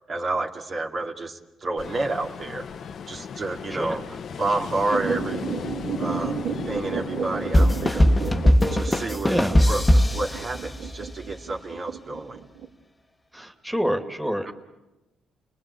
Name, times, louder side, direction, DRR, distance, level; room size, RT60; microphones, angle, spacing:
voice 1, 0.0-2.7 3.1-5.4 6.0-6.4 6.7-8.1 8.7-12.4 14.5-14.6, right 2 dB, 45° right, 1 dB, 2.5 m, -30 dB
Ocean, 1.8-8.5, left 6 dB, 60° left, 1.0 m, -36 dB
sound 1, 4.9-12.7, right 7 dB, 85° right, 3.2 m, -33 dB
sound 2, 7.5-11.1, equal, 15° left, 1.5 m, -20 dB
voice 2, 9.0-9.6 13.3-14.5, equal, ahead, 5 dB, 2.4 m, -27 dB
29.0 x 20.5 x 8.6 m, 1.0 s
cardioid pair, 90°, 0 cm